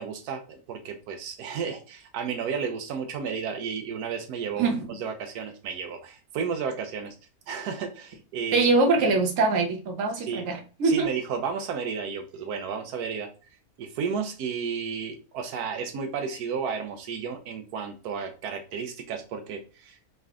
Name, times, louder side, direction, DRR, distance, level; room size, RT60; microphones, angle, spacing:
voice 1, 0.0-4.7 5.0-7.2 7.5-8.7 10.2-10.5 10.8-13.3 13.8-20.1, right 6 dB, 90° right, 6 dB, 1.2 m, -32 dB
voice 2, 8.5-11.1, right 3 dB, 65° right, 4 dB, 1.2 m, -23 dB
3.8 x 3.3 x 3.5 m, 0.34 s
omnidirectional pair, 1.6 m